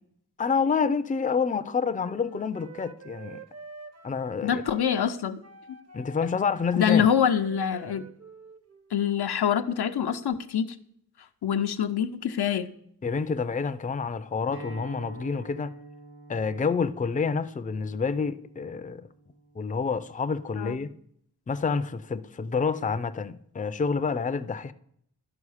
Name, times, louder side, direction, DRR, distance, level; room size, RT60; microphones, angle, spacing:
voice 1, 0.4-3.4 4.0-4.6 5.9-7.1 13.0-15.7 16.3-19.1 19.6-20.9 21.5-24.7, left 5 dB, 20° left, 0.4 m, -28 dB
Wind instrument woodwind instrument, 1.6-9.0, right 4 dB, 40° right, 0.7 m, -47 dB
voice 2, 4.4-5.4 6.7-8.1 8.9-10.8 11.4-12.7 20.6-20.8, left 8 dB, 85° left, 0.6 m, -25 dB
Acoustic guitar, 14.5-19.7, right 3 dB, 80° right, 1.9 m, -48 dB
12.0 x 5.4 x 4.8 m
wide cardioid pair, 65°, 38 cm